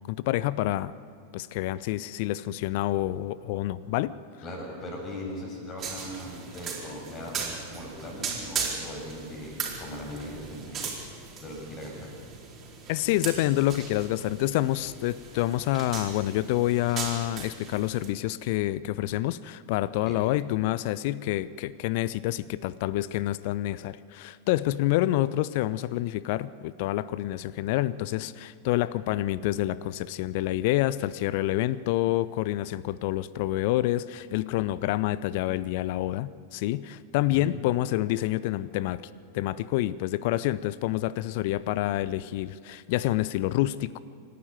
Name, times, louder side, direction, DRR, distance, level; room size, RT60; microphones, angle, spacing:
voice 1, 0.1-0.9 1.3-4.1 12.9-39.0 39.3-44.0, left 15 dB, 50° left, 19 dB, 0.6 m, -28 dB
voice 2, 4.4-10.9 11.4-12.1 20.0-20.2 37.3-37.5, equal, 30° left, -1 dB, 7.4 m, -39 dB
sound 1, 5.8-18.1, right 6 dB, 25° right, 4.4 m, -38 dB
26.5 x 12.0 x 9.3 m, 2.5 s
figure-of-eight pair, 90°, 0 cm